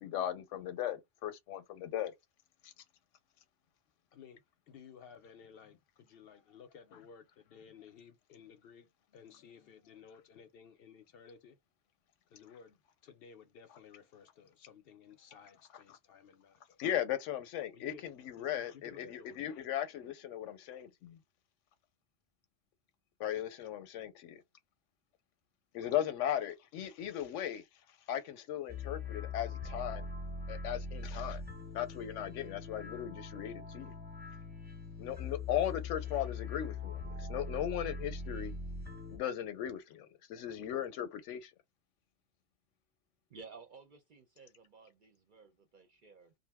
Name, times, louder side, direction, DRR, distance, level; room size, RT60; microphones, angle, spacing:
voice 1, 0.0-2.1 2.6-2.7 16.8-21.2 23.2-24.4 25.7-27.6 28.1-30.1 30.5-31.4 31.7-33.9 35.0-38.5 39.1-41.5, left 11 dB, 85° left, 0.9 m, -37 dB
voice 2, 4.1-11.6 12.3-16.8 17.7-18.0 18.5-19.4, left 7 dB, 65° left, 0.7 m, -56 dB
sound 1, 28.7-39.2, left 3 dB, 10° right, 0.7 m, -42 dB
voice 3, 43.3-46.3, right 4 dB, 55° right, 0.6 m, -55 dB
2.5 x 2.0 x 3.4 m
omnidirectional pair, 1.2 m